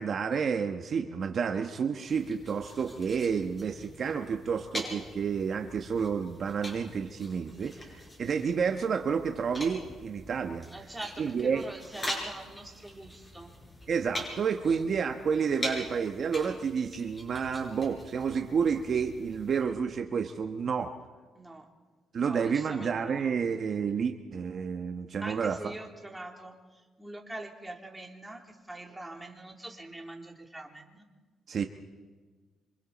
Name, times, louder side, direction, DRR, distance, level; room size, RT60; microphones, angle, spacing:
voice 1, 0.0-10.7 11.2-11.6 13.9-20.9 22.1-25.7 31.5-31.6, right 6 dB, 55° right, 5 dB, 1.2 m, -30 dB
sound 1, 2.1-19.6, left 1 dB, 20° left, 7.5 m, -43 dB
voice 2, 10.7-13.5 14.6-14.8 21.3-21.7 22.2-23.4 25.2-31.0, right 2 dB, 10° right, 1 dB, 3.3 m, -43 dB
26.5 x 26.0 x 4.2 m, 1.4 s
cardioid pair, 90°, 0 cm